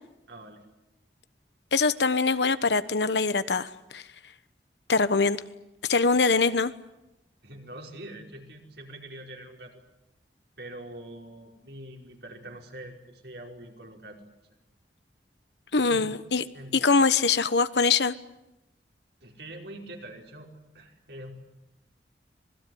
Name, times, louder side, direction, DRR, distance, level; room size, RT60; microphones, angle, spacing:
voice 1, 0.3-0.6 7.4-9.7 10.6-14.2 15.7-16.1 16.5-16.7 19.2-21.3, right 1 dB, 75° right, 1 dB, 5.1 m, -44 dB
voice 2, 1.7-4.0 4.9-5.4 5.9-6.7 15.7-16.4 16.7-18.1, left 4 dB, 80° left, 13 dB, 1.1 m, -23 dB
26.0 x 20.5 x 9.4 m, 0.93 s
head